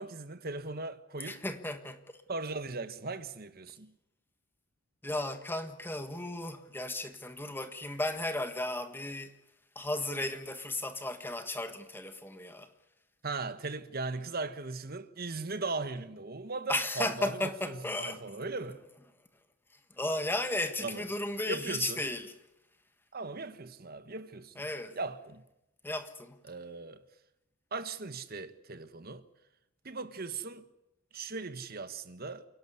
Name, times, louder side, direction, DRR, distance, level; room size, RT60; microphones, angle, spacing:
voice 1, 0.0-1.4 2.3-3.9 13.2-17.4 17.7-18.8 20.8-21.0 21.5-22.0 23.1-24.6 24.9-25.4 26.5-27.0 27.7-29.2 29.8-30.6 31.1-32.5, right 3 dB, 45° right, 1.3 m, -38 dB
voice 2, 1.2-2.2 5.0-9.3 9.7-12.7 16.7-18.2 20.0-22.3 24.6-25.0 25.8-26.4, left 1 dB, 10° left, 1.5 m, -35 dB
28.0 x 12.0 x 9.7 m
head